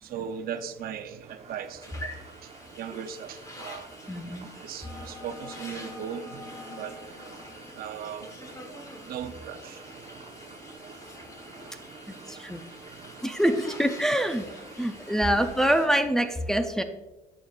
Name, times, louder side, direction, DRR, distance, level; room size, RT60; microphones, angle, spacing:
voice 1, 0.0-2.2 2.4-2.5 2.8-3.9 4.6-6.4 6.7-7.0 7.7-8.3 9.0-9.8, right 8 dB, 60° right, 9 dB, 0.7 m, -37 dB
sound 1, 1.2-16.0, right 4 dB, 40° right, 1.0 m, -48 dB
sound 2, 1.8-15.9, left 1 dB, 20° left, 1.2 m, -47 dB
voice 2, 4.1-4.5 12.3-12.6 13.2-14.5 14.8-16.8, equal, 5° left, 5 dB, 0.6 m, -25 dB
sound 3, 4.8-11.7, left 3 dB, 35° left, 2.3 m, -49 dB
11.0 x 7.2 x 2.4 m, 1.0 s
cardioid pair, 110°, 17 cm